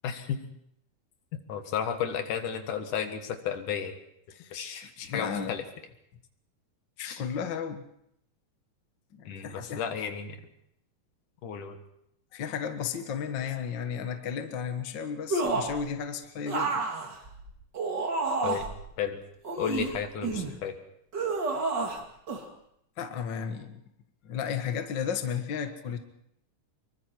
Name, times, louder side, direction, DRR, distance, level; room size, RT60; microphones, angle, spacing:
voice 1, 0.0-0.4 1.5-3.9 4.5-5.6 7.0-7.2 9.2-10.4 11.4-11.8 18.4-18.7 19.0-19.2 19.6-20.7, left 8 dB, 75° left, 7 dB, 3.1 m, -33 dB
voice 2, 5.1-5.5 7.0-7.9 9.1-9.9 12.3-16.8 23.0-23.8 24.2-26.0, left 7 dB, 45° left, 6 dB, 1.6 m, -34 dB
sound 1, 15.3-15.8 16.5-18.8 19.4-20.5 21.1-22.0 22.3-22.4, right 3 dB, 35° right, 2.7 m, -30 dB
24.5 x 23.0 x 4.6 m, 0.74 s
omnidirectional pair, 3.7 m